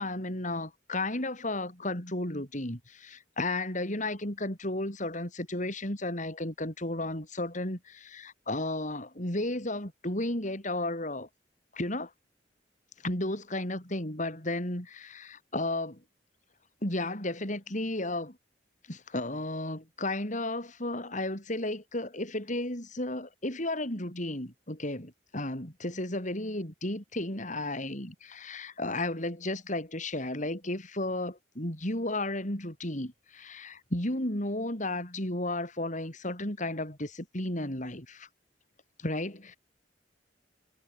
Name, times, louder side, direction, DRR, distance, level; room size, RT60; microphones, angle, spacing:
voice 1, 0.0-11.3 11.7-12.1 13.0-16.0 16.8-18.4 18.9-38.3 39.0-39.6, left 1 dB, 45° left, 7.2 m, -33 dB
head